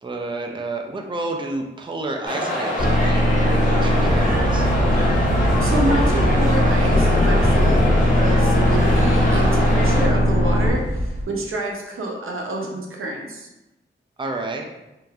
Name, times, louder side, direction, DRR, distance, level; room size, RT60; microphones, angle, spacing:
voice 1, 0.0-4.7 14.2-14.7, right 2 dB, 25° right, 2 dB, 0.5 m, -30 dB
sound 1, 2.2-10.1, left 1 dB, 40° left, 1.3 m, -25 dB
sound 2, 2.8-10.7, equal, 85° left, 1.1 m, -18 dB
sound 3, 4.1-11.2, equal, 70° right, 1.2 m, -30 dB
voice 2, 5.6-7.8 8.0-13.5, right 1 dB, 85° right, 0 dB, 0.6 m, -28 dB
3.7 x 2.7 x 2.4 m, 0.97 s
cardioid pair, 55°, 21 cm